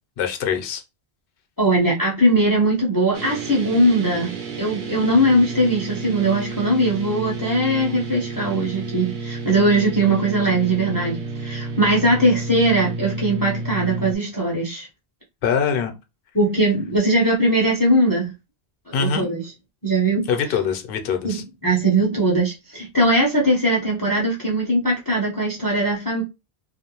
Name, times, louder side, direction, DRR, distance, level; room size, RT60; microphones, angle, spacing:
voice 1, 0.2-0.8 15.4-15.9 18.9-19.3 20.3-21.4, left 6 dB, 65° left, 0.7 m, -23 dB
voice 2, 1.6-14.9 16.3-18.3 18.9-19.4 19.8-20.2 21.2-26.2, right 1 dB, 25° left, 0.6 m, -20 dB
sound 1, 3.1-14.1, right 3 dB, 55° right, 0.7 m, -31 dB
2.5 x 2.1 x 2.9 m
omnidirectional pair, 1.1 m